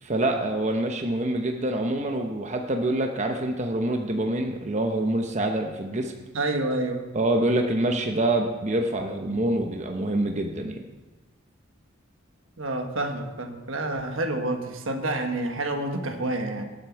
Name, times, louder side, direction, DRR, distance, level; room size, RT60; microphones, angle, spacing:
voice 1, 0.0-6.1 7.1-10.8, right 1 dB, 35° right, 4 dB, 0.9 m, -26 dB
voice 2, 6.3-7.0 12.6-16.6, right 2 dB, 75° right, 5 dB, 1.4 m, -28 dB
19.5 x 7.8 x 4.7 m, 1.2 s
head